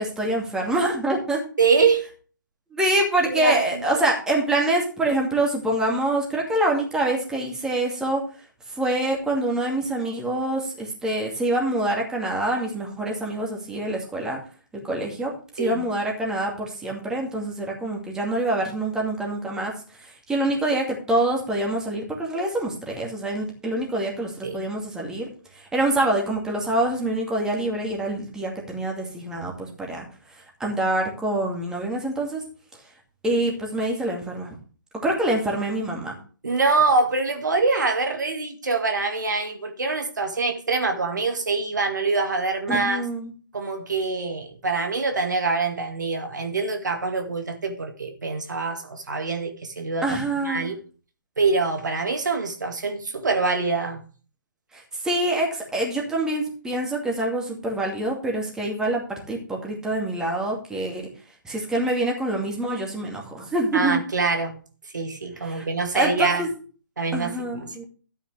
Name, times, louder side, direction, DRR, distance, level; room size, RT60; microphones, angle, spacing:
voice 1, 0.0-1.4 2.7-8.2 8.7-14.4 14.7-19.7 20.0-25.3 25.5-32.4 33.2-34.6 35.0-36.2 42.7-43.3 50.0-50.7 54.7-61.1 61.4-64.0 65.4-65.7 65.9-66.5 67.1-67.8, right 1 dB, 5° right, 2.4 m, -26 dB
voice 2, 1.6-2.1 3.3-3.8 15.6-15.8 24.4-24.6 36.4-43.0 43.5-50.1 50.5-50.8 51.4-54.0 63.7-64.6 64.9-66.4 67.0-67.8, right 4 dB, 60° right, 2.0 m, -24 dB
13.0 x 9.2 x 3.4 m
figure-of-eight pair, 135°, 11 cm